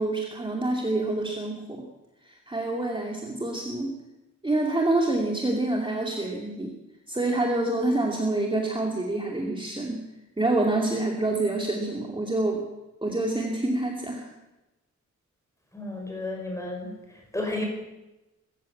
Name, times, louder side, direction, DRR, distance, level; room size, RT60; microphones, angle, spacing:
voice 1, 0.0-1.8 2.2-3.9 4.4-6.7 7.1-10.0 10.4-12.6 13.0-14.3, right 2 dB, 15° right, 0 dB, 2.5 m, -27 dB
voice 2, 15.7-16.9 17.3-17.7, left 2 dB, 10° left, 1 dB, 5.6 m, -32 dB
22.5 x 14.5 x 8.7 m, 1.0 s
wide cardioid pair, 165°, 31 cm